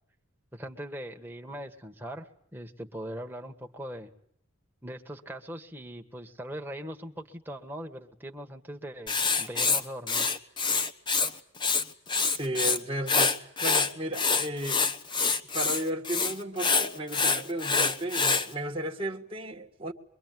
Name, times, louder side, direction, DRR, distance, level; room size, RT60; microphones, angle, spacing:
voice 1, 0.5-4.1 4.8-10.4, equal, 10° right, 1.7 m, -41 dB
Writing, 9.1-11.3 11.6-12.8 13.1-18.5, left 4 dB, 20° left, 1.0 m, -26 dB
voice 2, 12.2-14.8 15.5-19.9, right 1 dB, 25° right, 1.6 m, -34 dB
24.0 x 23.5 x 9.5 m
head